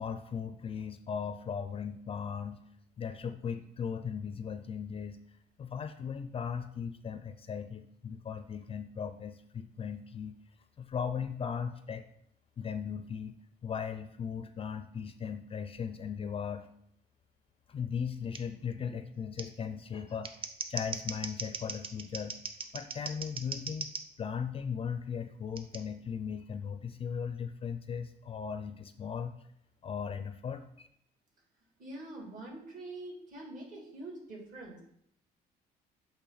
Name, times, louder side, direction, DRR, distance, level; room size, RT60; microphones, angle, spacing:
voice 1, 0.0-2.6 3.0-5.2 5.6-10.4 10.8-12.0 12.6-13.4 13.6-16.7 17.7-20.3 20.7-22.4 22.7-23.9 24.2-29.3 29.8-30.9, left 7 dB, 35° left, 10 dB, 0.4 m, -37 dB
Scissors, 18.3-18.4 19.4-19.5 20.1-24.0 25.6-25.8, right 5 dB, 30° right, 0.7 m, -39 dB
voice 2, 31.8-34.8, right 2 dB, 50° right, -1 dB, 2.6 m, -44 dB
8.4 x 3.3 x 4.1 m, 0.71 s
cardioid pair, 110°, 17 cm